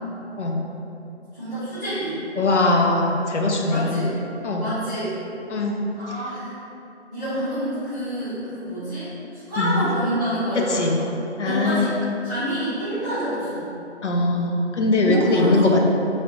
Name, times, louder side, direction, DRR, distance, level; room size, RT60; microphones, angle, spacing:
voice 1, 1.3-2.2 3.7-4.1 4.6-5.1 5.9-6.5 7.1-9.1 9.5-11.1 11.4-11.9 12.2-13.7 15.0-15.8, equal, 10° left, -23 dB, 0.8 m, -27 dB
voice 2, 2.4-4.1 4.4-4.7 5.5-5.8 9.6-9.8 10.6-11.0 11.4-11.9 14.0-15.9, left 2 dB, 75° left, 0 dB, 0.5 m, -21 dB
3.3 x 2.5 x 2.5 m, 2.9 s
figure-of-eight pair, 155°, 35 cm